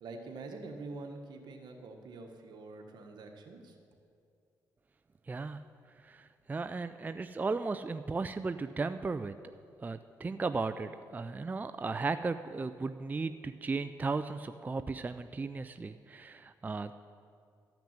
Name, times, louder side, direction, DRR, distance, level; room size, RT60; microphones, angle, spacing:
voice 1, 0.0-3.8, right 3 dB, 70° right, 3 dB, 1.4 m, -45 dB
voice 2, 5.3-5.6 6.0-9.4 9.8-16.9, right 4 dB, 20° right, 11 dB, 0.4 m, -35 dB
13.0 x 5.9 x 8.9 m, 2.3 s
cardioid pair, 80°, 8 cm